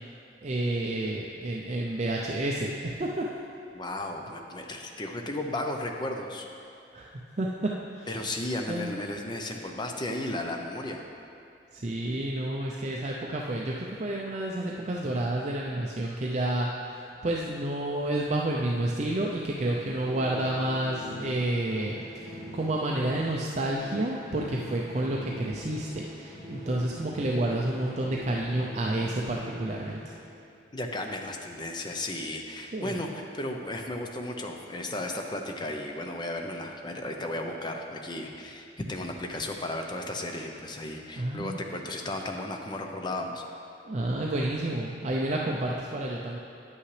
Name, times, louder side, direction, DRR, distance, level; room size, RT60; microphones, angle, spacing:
voice 1, 0.4-3.3 6.9-7.1 7.4-8.2 8.7-9.0 11.7-30.0 32.7-33.0 41.2-41.7 43.8-46.4, right 1 dB, 40° right, -2 dB, 0.5 m, -30 dB
voice 2, 3.7-6.5 8.1-11.1 30.7-43.4, left 1 dB, 25° left, 2 dB, 0.6 m, -34 dB
sound 1, 18.9-30.9, equal, ahead, 1.9 m, -44 dB
10.0 x 8.5 x 3.3 m, 2.5 s
head